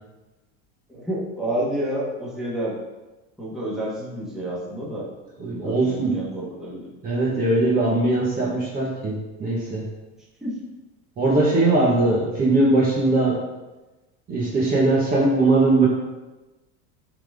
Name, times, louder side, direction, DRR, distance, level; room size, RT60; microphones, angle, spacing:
voice 1, 0.9-2.8 3.4-5.1 5.6-6.9 10.4-10.5, right 1 dB, ahead, -7 dB, 1.5 m, -29 dB
voice 2, 5.4-6.1 7.0-9.1 9.4-9.8 11.2-13.4 14.3-15.9, right 2 dB, 25° right, -5 dB, 1.3 m, -20 dB
11.5 x 4.1 x 3.5 m, 1.1 s
cardioid pair, 170°, 36 cm